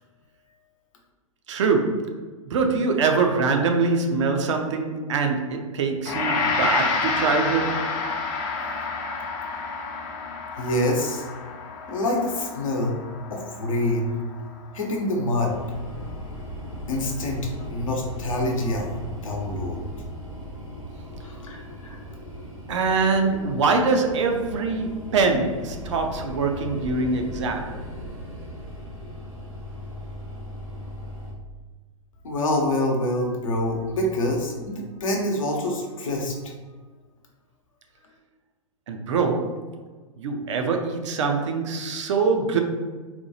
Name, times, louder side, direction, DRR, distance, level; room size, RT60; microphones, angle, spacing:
voice 1, 1.5-2.2 2.5-7.9 22.7-27.8 38.9-39.7 40.2-42.6, right 4 dB, 60° right, 4 dB, 0.5 m, -24 dB
Gong, 6.0-15.2, left 4 dB, 40° left, 0.5 m, -29 dB
voice 2, 10.6-11.3 11.9-13.0 13.3-14.2 14.7-15.5 16.9-19.8 21.2-22.0 32.2-36.5, left 1 dB, 70° left, 0 dB, 0.8 m, -26 dB
sound 1, 15.5-31.3, equal, 85° right, 1.4 m, -38 dB
4.2 x 2.2 x 2.7 m, 1.4 s
figure-of-eight pair, 105°, 18 cm